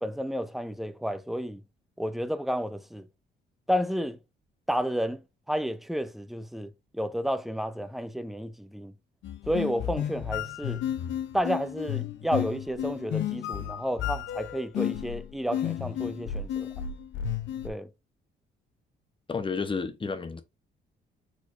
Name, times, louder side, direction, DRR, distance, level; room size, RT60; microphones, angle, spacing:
voice 1, 0.0-1.6 2.0-3.1 3.7-4.2 4.7-5.2 5.5-8.9 9.5-10.8 11.3-16.7 17.6-17.9, equal, ahead, 0.6 m, -31 dB
sound 1, 9.2-17.7, left 10 dB, 70° left, 0.7 m, -32 dB
voice 2, 19.3-20.4, left 5 dB, 25° left, 0.9 m, -31 dB
4.6 x 4.3 x 2.6 m
cardioid pair, 90°, 20 cm